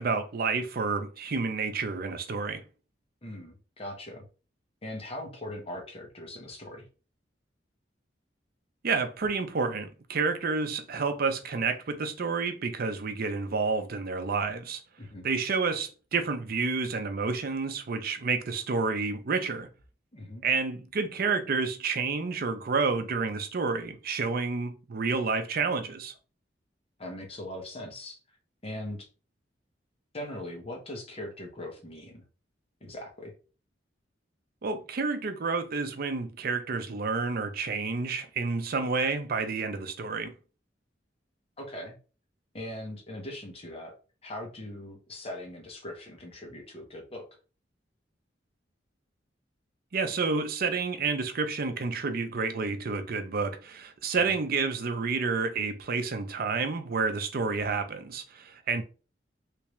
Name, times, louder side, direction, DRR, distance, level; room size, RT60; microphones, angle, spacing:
voice 1, 0.0-2.6 8.8-14.8 15.2-19.7 20.4-26.1 34.6-40.3 49.9-58.8, right 4 dB, 55° right, 0.5 m, -29 dB
voice 2, 3.2-4.3 4.8-6.9 15.0-15.3 20.1-20.4 27.0-28.2 28.6-29.1 30.1-32.2 32.8-33.3 41.6-42.0 42.5-43.9 44.2-47.3 54.3-54.4 58.7-58.8, left 1 dB, 35° left, 1.0 m, -40 dB
3.3 x 2.8 x 3.1 m
head